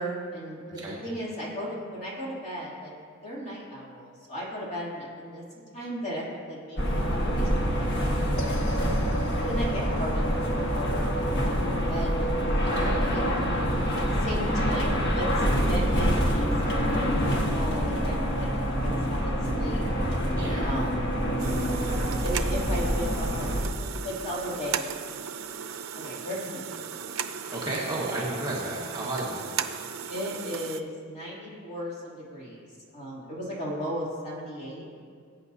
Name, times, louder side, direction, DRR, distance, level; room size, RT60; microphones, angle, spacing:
voice 1, 0.0-0.6 1.0-2.9 3.2-5.4 5.7-8.9 9.5-13.2 13.9-18.5 18.8-19.8 20.6-21.2 22.2-23.5 23.8-24.9 26.0-26.8 30.1-32.6 32.9-34.9, equal, 35° left, -6 dB, 3.0 m, -36 dB
voice 2, 0.7-1.0 12.7-13.0 20.4-20.7 27.5-29.5, right 1 dB, 20° right, -6 dB, 1.6 m, -33 dB
sound 1, 6.8-23.6, equal, 50° left, 1.6 m, -26 dB
sound 2, 8.4-18.8, equal, 80° left, 1.4 m, -43 dB
sound 3, 21.4-30.8, right 8 dB, 85° right, 0.6 m, -36 dB
20.0 x 8.8 x 2.8 m, 2.2 s
head